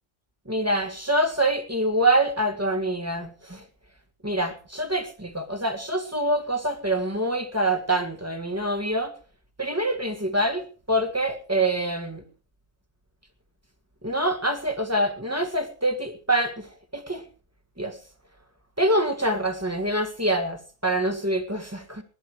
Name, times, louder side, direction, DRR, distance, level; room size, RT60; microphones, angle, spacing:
voice 1, 0.5-3.6 4.2-9.1 9.6-10.6 10.9-12.2 14.0-16.7 16.9-17.2 17.8-18.0 18.8-22.0, right 1 dB, 10° right, 7 dB, 1.7 m, -25 dB
19.0 x 10.5 x 4.7 m, 0.39 s
omnidirectional pair, 1.4 m